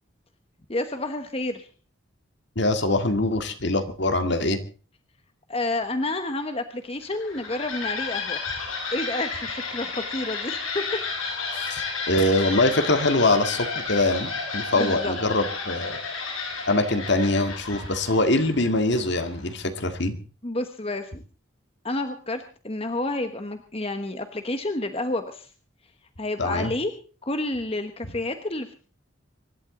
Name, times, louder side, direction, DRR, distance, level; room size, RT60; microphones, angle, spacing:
voice 1, 0.7-1.7 5.5-8.4 8.9-10.8 14.7-15.1 20.4-21.2 21.8-25.5 26.2-26.9 27.3-28.7, left 2 dB, 30° left, 8 dB, 1.2 m, -29 dB
voice 2, 2.6-4.6 11.5-16.0 16.7-20.2 26.4-26.7, left 2 dB, 55° left, 8 dB, 2.0 m, -23 dB
sound 1, 7.0-19.6, left 4 dB, 85° left, 6.3 m, -32 dB
25.0 x 12.0 x 3.8 m, 0.38 s
head